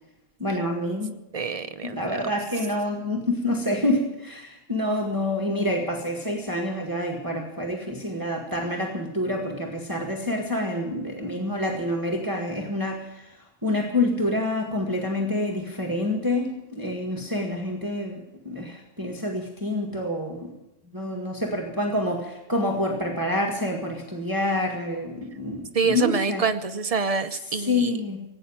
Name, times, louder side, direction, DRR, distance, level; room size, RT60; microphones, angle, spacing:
voice 1, 0.4-1.2 1.8-13.3 13.6-20.5 20.9-26.4 27.5-28.2, left 1 dB, 15° right, 0 dB, 1.9 m, -27 dB
voice 2, 1.3-2.0 25.7-27.9, right 5 dB, 35° right, 9 dB, 0.7 m, -26 dB
17.0 x 9.2 x 8.9 m, 0.90 s
omnidirectional pair, 1.4 m